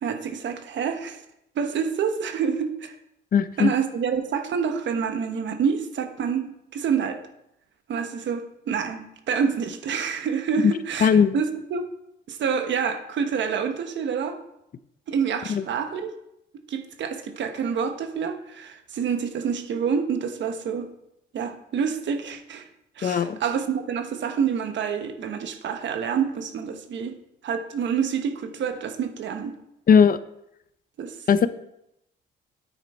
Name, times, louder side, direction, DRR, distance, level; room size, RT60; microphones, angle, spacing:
voice 1, 0.0-1.2 1.5-3.0 3.6-7.2 7.9-11.8 12.3-14.4 15.1-16.1 16.7-20.9 21.3-22.7 22.9-29.6 31.0-31.3, right 6 dB, 65° right, 7 dB, 1.2 m, -27 dB
voice 2, 3.3-3.7 10.6-10.7 11.0-11.4 15.5-15.6 23.0-23.4 29.9-30.2 31.3-31.5, left 7 dB, 45° left, 14 dB, 0.6 m, -18 dB
9.2 x 9.1 x 4.3 m, 0.82 s
cardioid pair, 90°, 20 cm